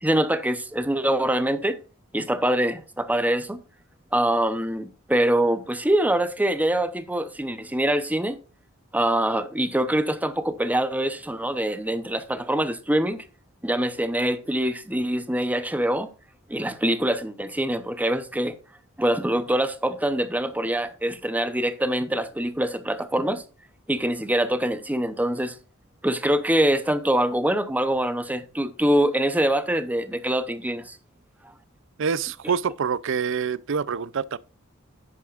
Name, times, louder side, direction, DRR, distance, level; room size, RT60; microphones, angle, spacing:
voice 1, 0.0-1.8 2.1-3.6 4.1-8.4 8.9-13.2 13.6-16.1 16.5-18.6 19.0-23.4 23.9-25.6 26.0-31.0, right 1 dB, 5° right, 0.7 m, -24 dB
voice 2, 32.0-34.4, right 6 dB, 60° right, 0.5 m, -26 dB
10.5 x 8.5 x 2.5 m
head